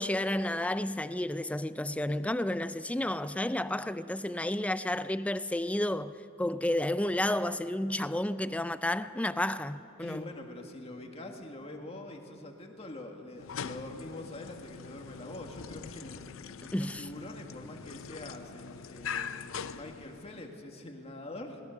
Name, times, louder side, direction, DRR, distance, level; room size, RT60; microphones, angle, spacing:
voice 1, 0.0-10.2 16.7-17.1, left 1 dB, 5° left, 0.4 m, -31 dB
sound 1, 8.5-14.1, right 2 dB, 80° right, 5.7 m, -61 dB
voice 2, 10.0-16.2 16.8-21.6, left 1 dB, 30° left, 2.0 m, -44 dB
sound 2, 13.3-20.6, left 7 dB, 75° left, 0.5 m, -42 dB
21.5 x 18.5 x 6.6 m
head